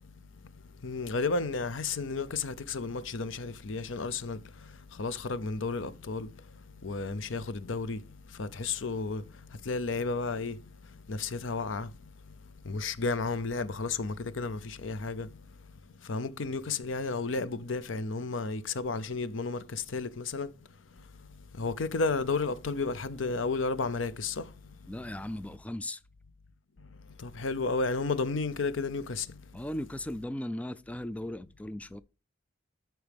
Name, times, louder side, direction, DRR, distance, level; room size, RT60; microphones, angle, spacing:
voice 1, 0.8-4.4 5.0-6.3 6.8-8.0 8.4-9.2 9.6-10.6 11.1-11.9 12.7-15.3 16.1-20.5 21.6-24.5 27.2-29.3, left 3 dB, 90° left, 0.7 m, -32 dB
voice 2, 24.9-26.0 29.5-32.0, left 1 dB, 5° left, 0.3 m, -37 dB
13.0 x 4.6 x 3.5 m
head